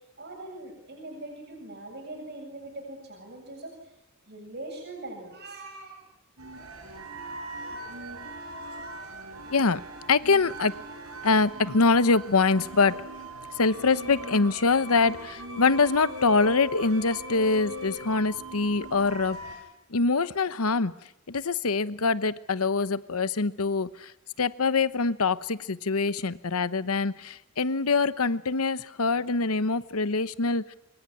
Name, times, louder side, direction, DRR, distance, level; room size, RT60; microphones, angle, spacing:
voice 1, 0.2-3.7 4.3-6.0, right 2 dB, 50° right, 2 dB, 7.8 m, -41 dB
sound 1, 6.4-19.6, equal, 80° right, 7.9 m, -40 dB
voice 2, 9.5-9.8 10.1-10.8 11.2-13.0 13.6-19.4 19.9-20.9 21.3-24.1 24.4-30.7, left 4 dB, 80° left, 15 dB, 1.0 m, -24 dB
25.0 x 23.5 x 9.7 m, 0.83 s
head